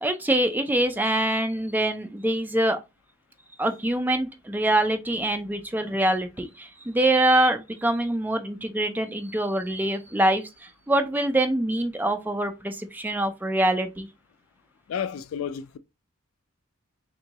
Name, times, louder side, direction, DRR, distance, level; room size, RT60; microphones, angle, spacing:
voice 1, 0.0-2.8 3.6-10.4 10.9-14.1, right 1 dB, 10° right, 0.4 m, -24 dB
voice 2, 14.9-15.8, left 8 dB, 75° left, 0.3 m, -31 dB
3.6 x 2.6 x 2.9 m
head